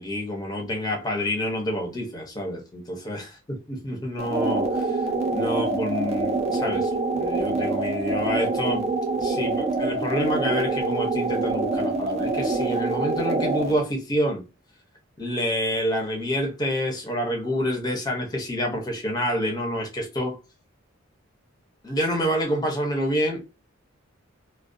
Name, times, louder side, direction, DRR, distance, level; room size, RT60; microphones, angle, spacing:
voice 1, 0.0-5.0 5.3-14.4 15.2-20.4 21.8-23.4, equal, 20° left, 0.6 m, -28 dB
sound 1, 4.2-13.8, right 3 dB, 30° right, 0.3 m, -25 dB
2.3 x 2.1 x 2.5 m
head